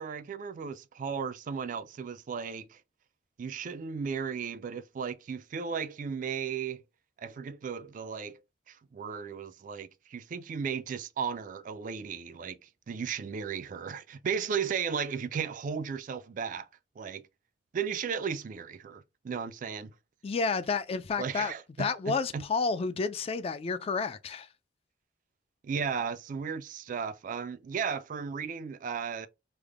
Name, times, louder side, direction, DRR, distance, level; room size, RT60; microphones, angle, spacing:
voice 1, 0.0-2.8 3.4-6.8 7.2-8.4 8.7-16.7 17.0-17.2 17.7-19.9 21.2-22.4 25.6-29.3, right 6 dB, 50° right, 0.3 m, -35 dB
voice 2, 20.2-21.5 21.8-24.5, left 4 dB, 35° left, 0.3 m, -30 dB
3.3 x 2.1 x 3.5 m
head